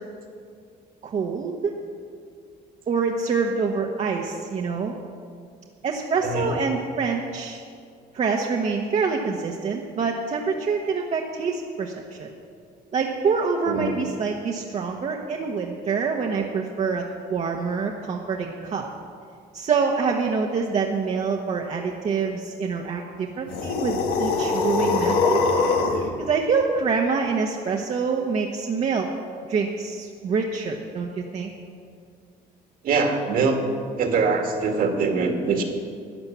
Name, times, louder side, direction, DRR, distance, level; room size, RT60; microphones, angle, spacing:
voice 1, 1.0-1.8 2.9-4.9 5.8-7.6 8.1-12.3 12.9-17.0 17.3-18.9 19.5-25.4 26.2-29.1 29.5-31.5, right 5 dB, 45° right, 0 dB, 1.1 m, -26 dB
voice 2, 6.2-6.6 13.7-13.9 32.8-33.6 34.0-35.6, right 4 dB, 60° right, 3 dB, 2.0 m, -23 dB
sound 1, 23.5-26.1, left 4 dB, 90° left, 1.7 m, -22 dB
12.5 x 9.8 x 7.3 m, 2.2 s
cardioid pair, 110°, 17 cm